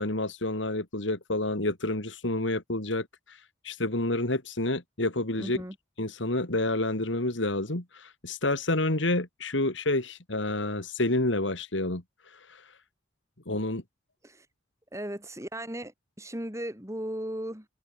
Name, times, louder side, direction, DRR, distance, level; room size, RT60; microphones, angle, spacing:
voice 1, 0.0-5.6 6.0-12.7 13.5-13.8, left 2 dB, 70° left, 3.0 m, -29 dB
voice 2, 5.4-5.8 14.2-14.5 14.9-17.7, right 1 dB, 15° right, 5.8 m, -36 dB
open air
head